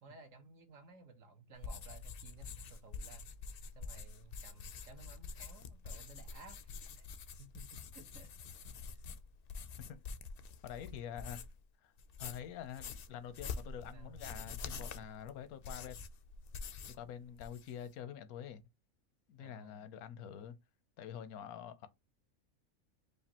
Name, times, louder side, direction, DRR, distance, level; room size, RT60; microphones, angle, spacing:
voice 1, 0.0-3.3 3.7-7.1 7.4-8.3 8.9-9.0 13.9-14.2 19.4-19.9, right 3 dB, 65° right, 1.4 m, -57 dB
sound 1, 1.6-11.6 12.0-17.1 17.3-17.9, left 4 dB, 65° left, 0.5 m, -47 dB
voice 2, 10.6-11.4 11.8-11.9 12.2-16.0 16.9-18.6 19.3-20.6 21.0-21.9, left 9 dB, 90° left, 1.2 m, -46 dB
5.0 x 2.5 x 2.8 m
omnidirectional pair, 1.5 m